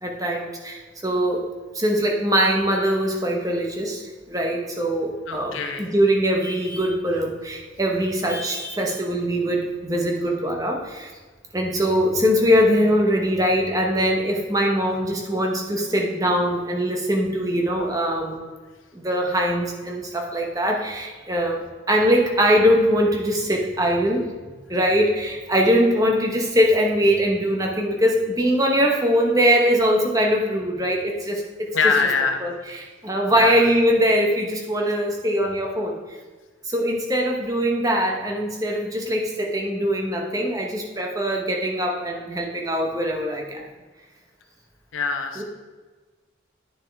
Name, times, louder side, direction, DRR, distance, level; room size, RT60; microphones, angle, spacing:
voice 1, 0.0-1.4 1.7-11.1 11.5-18.4 18.9-24.2 24.7-31.9 32.4-36.0 36.7-43.6 45.4-45.5, equal, 15° right, 1 dB, 0.9 m, -22 dB
voice 2, 5.3-5.8 31.7-32.5 33.3-33.7 44.9-45.4, left 5 dB, 80° left, 4 dB, 1.0 m, -23 dB
10.5 x 6.5 x 3.5 m, 1.3 s
head